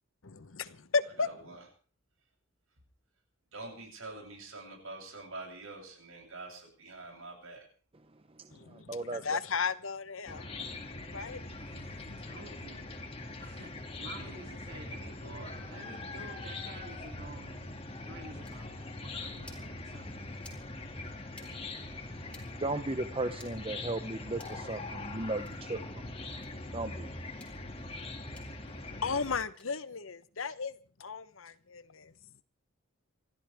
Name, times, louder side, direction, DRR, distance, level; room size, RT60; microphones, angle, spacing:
voice 1, 0.2-1.3 8.5-10.5 10.9-11.5 28.7-32.1, left 5 dB, 70° left, 14 dB, 1.0 m, -35 dB
voice 2, 1.2-1.6 3.5-7.6, right 2 dB, 75° right, 1 dB, 7.9 m, -45 dB
voice 3, 8.3-9.4 21.4-21.7 22.2-26.1 26.7-27.1, right 2 dB, 25° right, 10 dB, 0.7 m, -37 dB
Chicken rooster / Cricket, 10.3-29.4, left 2 dB, 25° left, 2.3 m, -42 dB
voice 4, 11.7-12.9 13.4-13.7 14.0-17.7 18.0-20.4, right 2 dB, 50° right, 4 dB, 2.6 m, -50 dB
sound 1, 18.4-18.5 19.4-19.6 20.4-20.6 21.3-21.5 22.3-22.5 23.3-23.5 24.3-24.6 25.4-25.5 26.4-26.5 27.3-27.5 28.3-28.5 29.5-29.7, left 2 dB, 5° left, 3.9 m, -54 dB
28.0 x 14.0 x 3.5 m, 0.42 s
head